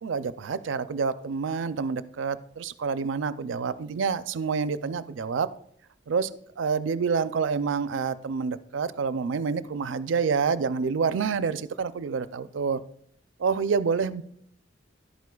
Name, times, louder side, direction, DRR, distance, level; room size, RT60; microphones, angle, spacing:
voice 1, 0.0-5.5 6.1-12.8 13.4-14.2, right 5 dB, 80° right, 14 dB, 0.4 m, -28 dB
11.5 x 9.4 x 2.3 m, 0.66 s
head